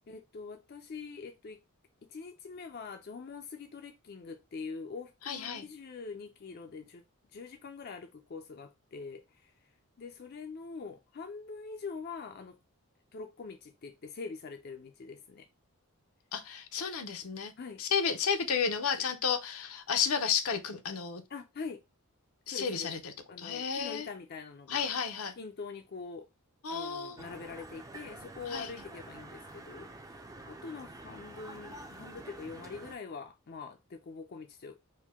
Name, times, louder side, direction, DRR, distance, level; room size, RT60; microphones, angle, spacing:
voice 1, 0.1-1.6 2.1-7.1 7.3-9.5 10.0-12.6 13.1-15.5 17.6-17.8 21.3-21.8 22.5-22.9 23.3-24.9 25.4-26.3 26.7-34.8, left 4 dB, 45° left, 0.4 m, -44 dB
voice 2, 5.3-5.6 16.3-17.5 17.8-21.2 22.5-24.1 24.7-25.3 26.6-27.2 28.5-28.7, left 6 dB, 80° left, 0.7 m, -32 dB
sound 1, 27.2-33.0, right 2 dB, 15° right, 0.4 m, -48 dB
4.4 x 2.2 x 3.5 m
head